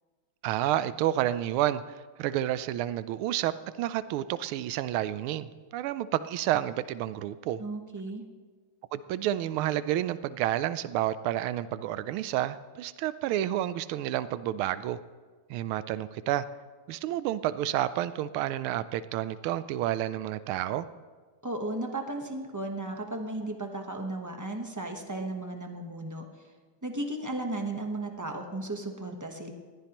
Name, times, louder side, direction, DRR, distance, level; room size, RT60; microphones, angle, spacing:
voice 1, 0.4-5.5 5.7-7.6 8.9-15.0 15.5-16.5 16.9-20.9, right 13 dB, 85° right, 15 dB, 1.4 m, -30 dB
voice 2, 7.6-8.2 21.4-26.2 26.8-29.5, right 2 dB, 20° right, 3 dB, 0.4 m, -35 dB
21.0 x 15.0 x 3.0 m, 1.4 s
omnidirectional pair, 2.3 m